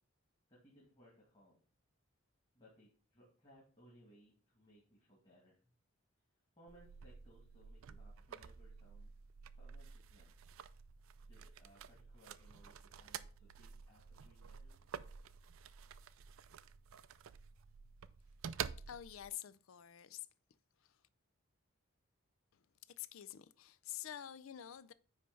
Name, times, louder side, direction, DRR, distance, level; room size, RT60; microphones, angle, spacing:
voice 1, 0.5-1.6 2.5-5.6 6.6-9.1 9.5-10.3 11.3-14.8, equal, 25° left, 2.2 m, -65 dB
sound 1, 6.7-19.3, right 7 dB, 75° right, 0.4 m, -50 dB
voice 2, 18.9-20.3 20.8-21.0 23.0-24.9, left 11 dB, 75° left, 0.4 m, -48 dB
9.7 x 3.3 x 5.3 m
head